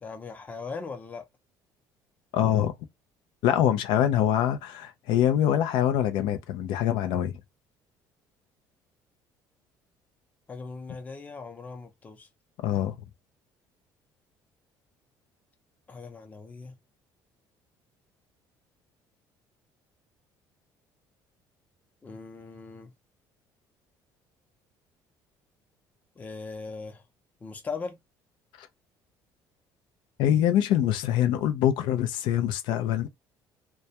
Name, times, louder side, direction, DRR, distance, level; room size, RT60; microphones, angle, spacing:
voice 1, 0.0-1.2 10.5-12.3 15.9-16.8 22.0-22.9 26.2-27.0 27.4-28.0, left 4 dB, 20° left, 0.6 m, -39 dB
voice 2, 2.3-2.7 3.4-7.4 12.6-13.0 28.6-28.7 30.2-33.1, left 11 dB, 80° left, 0.4 m, -24 dB
2.2 x 2.1 x 2.7 m
cardioid pair, 145°, 8 cm